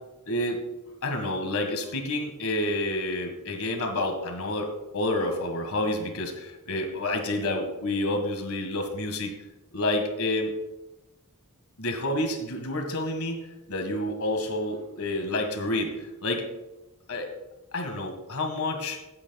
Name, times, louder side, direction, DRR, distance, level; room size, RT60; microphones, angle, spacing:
voice 1, 0.3-0.6 1.0-9.3 9.7-10.5 11.8-15.9 16.2-16.5 17.1-17.3 17.7-19.0, left 1 dB, 70° left, 4 dB, 1.8 m, -29 dB
16.5 x 8.7 x 2.4 m, 1.0 s
head